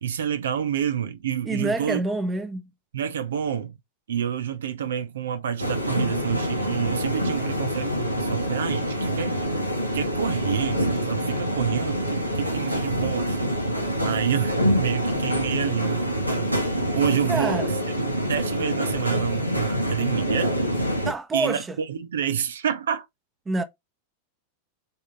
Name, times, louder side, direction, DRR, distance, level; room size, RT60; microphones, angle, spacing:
voice 1, 0.0-2.0 2.9-3.7 4.1-9.4 9.9-13.6 14.0-16.6 16.9-17.6 18.0-20.5 21.3-23.1, right 8 dB, 65° right, 0.7 m, -28 dB
voice 2, 1.5-2.7 17.3-17.7 21.0-21.8 23.5-23.6, right 2 dB, 15° right, 1.0 m, -27 dB
sound 1, 5.6-21.1, equal, 90° right, 1.7 m, -26 dB
8.0 x 3.7 x 3.3 m
figure-of-eight pair, 90°, 0 cm